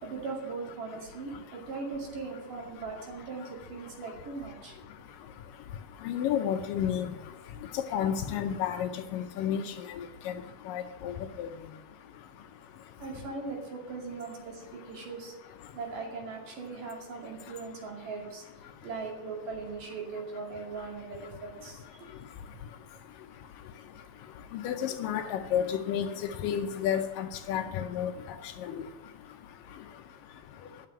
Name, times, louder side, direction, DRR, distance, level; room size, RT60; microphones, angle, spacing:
voice 1, 0.0-4.8 12.3-12.5 13.0-22.1, right 4 dB, 65° right, -1 dB, 3.8 m, -40 dB
voice 2, 6.1-7.1 7.9-10.3 10.7-11.5 24.5-26.1 26.4-28.1 28.6-28.7, left 9 dB, 75° left, 7 dB, 2.2 m, -31 dB
11.0 x 6.7 x 8.8 m, 1.1 s
omnidirectional pair, 4.2 m